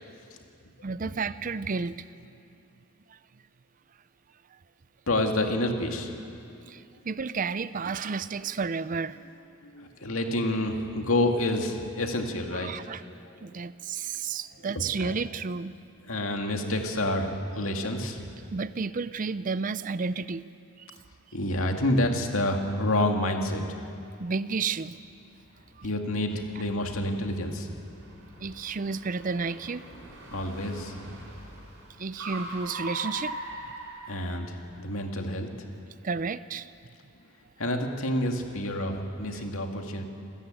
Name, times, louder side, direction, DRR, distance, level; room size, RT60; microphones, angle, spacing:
voice 1, 0.8-2.1 3.1-3.2 6.7-9.2 12.6-13.0 13.4-15.7 18.5-20.4 20.8-20.9 24.2-25.0 25.8-25.9 28.4-29.8 32.0-33.4 36.0-36.7 39.3-39.4, right 4 dB, 35° right, 15 dB, 0.5 m, -31 dB
voice 2, 5.1-6.1 6.5-6.7 8.4-8.5 9.6-12.7 13.3-13.5 15.0-15.1 16.1-18.3 21.3-23.6 25.8-27.8 30.3-31.2 34.1-35.5 37.6-40.1, left 1 dB, 70° left, 3 dB, 2.3 m, -28 dB
Car, 25.0-34.8, right 1 dB, 60° right, 6.7 m, -42 dB
28.0 x 14.0 x 9.1 m, 2.5 s
head